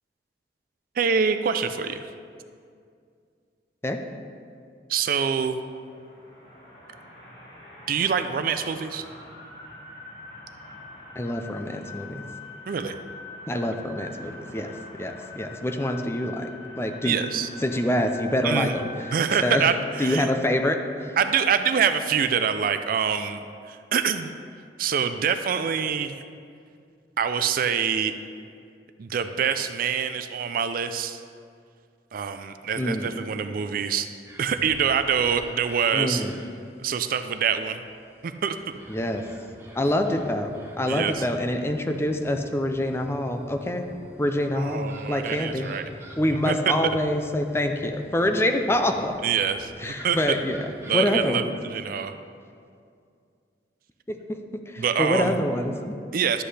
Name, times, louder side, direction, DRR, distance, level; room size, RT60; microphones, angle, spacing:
voice 1, 1.0-2.1 4.9-5.6 7.9-9.1 12.7-13.0 17.0-17.5 18.4-18.7 19.1-20.3 21.2-24.3 24.8-26.2 27.2-28.1 29.0-31.2 32.1-34.1 34.4-36.2 36.8-37.8 38.2-38.6 40.9-41.3 44.6-45.8 46.5-46.7 49.2-50.4 50.9-52.1 54.8-55.3 56.1-56.4, right 7 dB, 55° right, 10 dB, 0.4 m, -25 dB
sound 1, 5.6-19.3, left 2 dB, 65° left, 2.3 m, -43 dB
voice 2, 11.2-12.2 13.5-16.5 16.8-17.2 17.6-18.9 19.4-19.6 20.0-21.2 32.8-33.1 35.9-36.3 38.9-39.3 39.7-43.9 44.2-45.7 46.2-49.2 49.8-50.7 50.9-51.5 54.1-54.4 54.7-56.0, left 1 dB, 15° left, 5 dB, 0.5 m, -26 dB
sound 2, 34.3-51.3, equal, 15° right, 0.9 m, -47 dB
11.5 x 7.8 x 3.3 m, 2.3 s
head